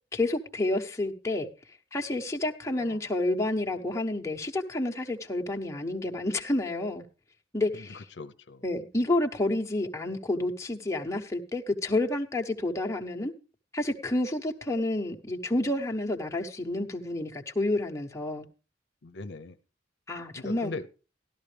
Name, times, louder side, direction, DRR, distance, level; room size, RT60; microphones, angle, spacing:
voice 1, 0.1-1.5 1.9-7.0 7.5-8.0 8.6-13.3 13.7-18.5 20.1-20.7, left 2 dB, 15° left, 2 dB, 1.0 m, -29 dB
voice 2, 7.7-8.6 19.0-19.6 20.4-20.9, left 3 dB, 75° left, 9 dB, 0.7 m, -40 dB
12.5 x 12.5 x 3.3 m, 0.33 s
head